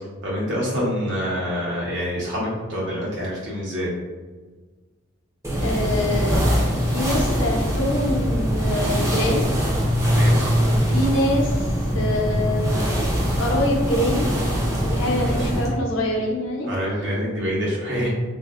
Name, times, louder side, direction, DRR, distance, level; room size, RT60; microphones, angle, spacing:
voice 1, 0.2-3.9 10.0-10.4 15.2-15.5 16.7-18.1, equal, 65° right, -5 dB, 1.0 m, -26 dB
sound 1, 5.4-15.7, equal, 15° right, 0.5 m, -22 dB
voice 2, 5.6-6.4 6.7-9.5 10.6-13.0 13.3-14.3 14.8-16.7, left 1 dB, 75° left, 0 dB, 0.6 m, -25 dB
3.4 x 2.5 x 2.4 m, 1.3 s
head